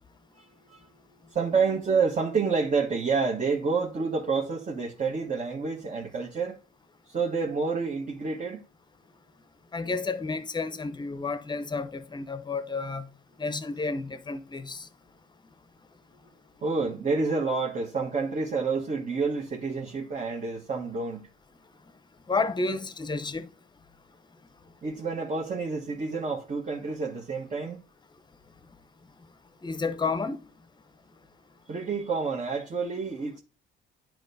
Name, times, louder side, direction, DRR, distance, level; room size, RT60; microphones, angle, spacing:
voice 1, 1.3-6.5 7.1-8.6 16.6-21.3 24.8-27.8 31.7-33.4, right 4 dB, 40° right, 1.3 m, -28 dB
voice 2, 9.7-13.1 13.4-14.9 22.3-23.5 29.6-30.4, left 4 dB, 20° left, 0.8 m, -31 dB
10.5 x 4.7 x 2.7 m
cardioid pair, 90°, 20 cm